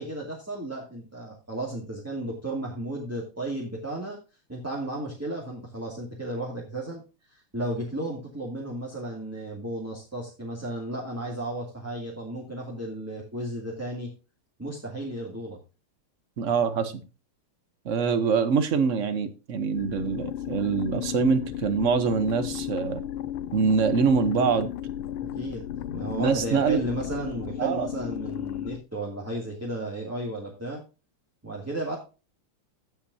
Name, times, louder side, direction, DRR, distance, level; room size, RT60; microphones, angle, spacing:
voice 1, 0.0-4.2 4.5-7.0 7.3-14.1 14.6-15.6 25.3-25.7 25.9-30.8 31.4-32.0, right 1 dB, 5° right, -3 dB, 2.1 m, -34 dB
voice 2, 16.4-16.9 17.8-23.0 23.5-24.7 26.2-26.8 27.6-27.9, right 5 dB, 55° right, 11 dB, 0.8 m, -24 dB
sound 1, 19.7-28.8, left 11 dB, 80° left, 1.5 m, -34 dB
16.5 x 5.8 x 2.7 m, 0.31 s
omnidirectional pair, 2.4 m